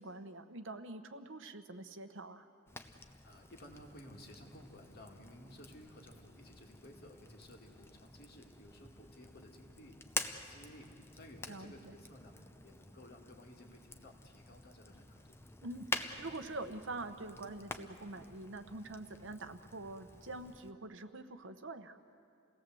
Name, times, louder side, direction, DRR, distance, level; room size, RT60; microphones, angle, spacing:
voice 1, 0.0-2.5 11.5-11.9 15.6-22.0, right 2 dB, 65° right, 9 dB, 1.0 m, -45 dB
Fire, 2.7-20.7, left 2 dB, 10° left, 0.7 m, -48 dB
voice 2, 3.2-15.4, equal, 50° left, 1 dB, 2.5 m, -56 dB
28.0 x 18.0 x 7.8 m, 2.5 s
head